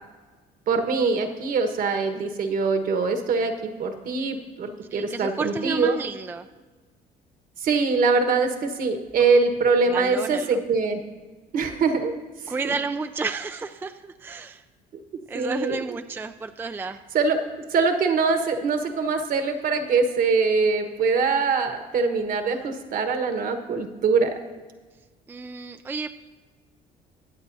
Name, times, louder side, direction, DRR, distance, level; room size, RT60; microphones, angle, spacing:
voice 1, 0.7-6.0 7.6-11.0 11.5-12.1 12.5-12.6 15.3-15.8 17.1-17.4 17.7-24.3, right 4 dB, 55° right, 7 dB, 1.3 m, -23 dB
voice 2, 4.9-6.5 9.9-10.6 12.5-14.6 15.3-17.0 25.3-26.1, right 4 dB, 15° right, 8 dB, 0.3 m, -31 dB
23.0 x 8.1 x 2.7 m, 1.4 s
cardioid pair, 110°, 17 cm